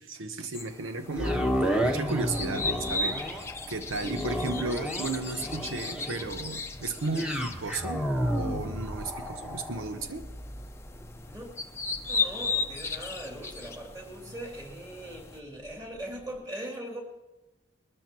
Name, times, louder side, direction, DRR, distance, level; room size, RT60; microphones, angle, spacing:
voice 1, 0.0-1.5 1.8-10.3, right 3 dB, 90° right, 8 dB, 0.9 m, -34 dB
sound 1, 0.5-15.4, left 4 dB, 15° left, 0.6 m, -37 dB
sound 2, 1.1-15.3 15.8-15.9, equal, 5° right, 1.2 m, -33 dB
voice 2, 12.1-17.0, right 1 dB, 20° right, 0 dB, 2.8 m, -40 dB
21.5 x 13.5 x 3.0 m, 1.1 s
head